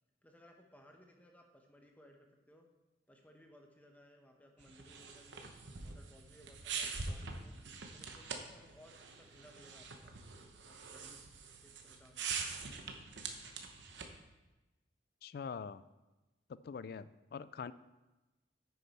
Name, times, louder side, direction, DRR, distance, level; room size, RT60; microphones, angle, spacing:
voice 1, 0.2-2.7 3.1-5.5 5.8-7.5 7.9-11.3 11.6-12.4, equal, 10° left, 2 dB, 0.9 m, -62 dB
sound 1, 4.6-14.2, right 5 dB, 70° right, 0.9 m, -44 dB
voice 2, 15.2-15.8 16.5-17.7, left 6 dB, 55° left, 16 dB, 0.3 m, -44 dB
9.5 x 6.6 x 4.2 m, 1.1 s
head